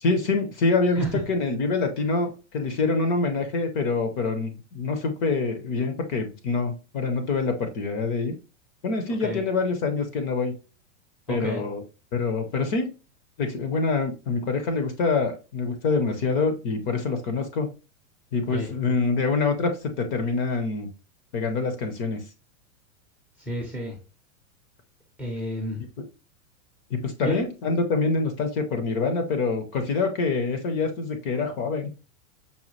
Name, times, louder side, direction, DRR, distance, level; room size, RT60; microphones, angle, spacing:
voice 1, 0.0-8.3 8.8-10.5 11.3-11.8 12.1-12.9 13.4-17.7 18.3-20.9 21.3-22.2 26.9-31.9, left 3 dB, 35° left, 7 dB, 0.7 m, -25 dB
voice 2, 11.3-11.6 18.5-18.7 23.5-24.0 25.2-25.8 27.2-27.5, equal, 5° right, -1 dB, 0.6 m, -30 dB
5.4 x 2.2 x 3.0 m, 0.31 s
supercardioid pair, 155°, 40 cm